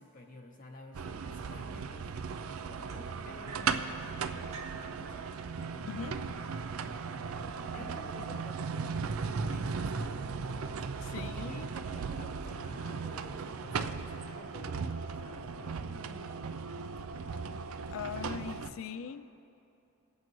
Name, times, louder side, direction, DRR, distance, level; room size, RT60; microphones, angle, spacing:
voice 1, 0.0-5.3 5.6-17.0 17.8-18.8, left 1 dB, 40° left, 1 dB, 0.7 m, -52 dB
sound 1, 0.9-18.7, right 5 dB, 90° right, 0.5 m, -37 dB
sound 2, 2.9-3.9 4.5-4.9 5.9-6.0 6.5-6.8 7.5-7.6, right 4 dB, 35° right, 1.1 m, -48 dB
voice 2, 5.8-6.2 7.7-7.9 8.2-8.4 11.0-11.7 17.9-19.3, left 7 dB, 75° left, 12 dB, 0.4 m, -41 dB
22.5 x 8.4 x 3.1 m, 2.7 s
head